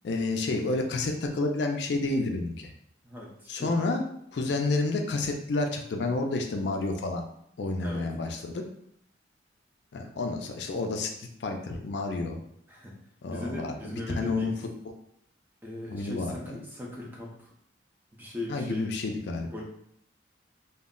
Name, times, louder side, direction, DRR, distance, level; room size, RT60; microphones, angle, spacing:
voice 1, 0.0-2.7 3.5-4.0 4.3-7.2 7.6-8.6 9.9-12.4 13.2-14.5 15.9-16.6 18.5-19.5, left 3 dB, 60° left, 3 dB, 0.4 m, -30 dB
voice 2, 3.0-3.9 7.8-8.1 12.7-13.0 13.3-14.6 15.6-17.5 18.1-18.9 19.5-19.6, left 2 dB, 10° right, -3 dB, 0.5 m, -39 dB
2.2 x 2.1 x 3.6 m, 0.71 s
head